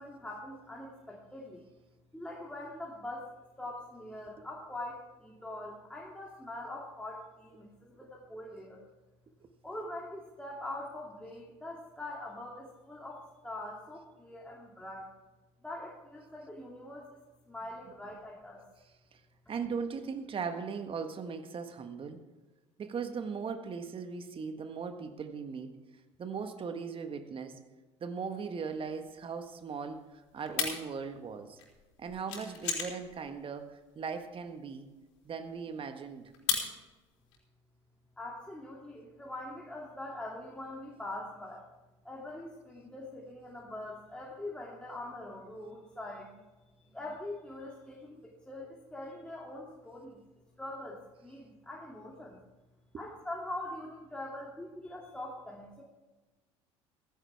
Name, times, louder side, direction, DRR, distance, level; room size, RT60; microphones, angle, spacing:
voice 1, 0.0-1.6 2.1-8.8 9.6-15.1 15.6-17.2 17.5-18.6 38.2-41.6 42.0-46.3 46.9-50.2 50.6-52.4 53.0-55.8, left 1 dB, 5° left, -3 dB, 2.7 m, -43 dB
voice 2, 19.5-22.3 22.8-25.8 26.2-27.6 28.0-31.6 32.0-34.9 35.3-36.3 52.9-53.0, right 5 dB, 35° right, 8 dB, 1.7 m, -38 dB
sound 1, 28.7-37.4, left 7 dB, 75° left, 3.9 m, -37 dB
15.5 x 15.5 x 3.5 m, 1.2 s
hypercardioid pair, 65°, 15 cm